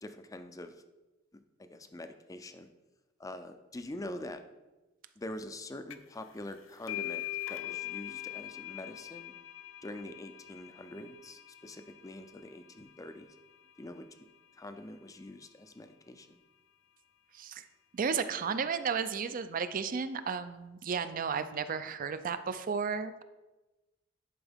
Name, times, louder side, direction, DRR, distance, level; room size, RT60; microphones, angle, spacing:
voice 1, 0.0-0.8 1.6-2.7 3.2-4.4 5.2-9.4 9.8-13.3 13.8-14.1 14.5-16.4, left 1 dB, 15° left, 8 dB, 0.4 m, -44 dB
sound 1, 5.9-6.2 6.5-13.8, left 15 dB, 80° left, 0.4 m, -42 dB
voice 2, 17.3-17.7 17.9-23.2, right 6 dB, 45° right, 12 dB, 0.4 m, -33 dB
10.5 x 4.4 x 3.5 m, 1.1 s
head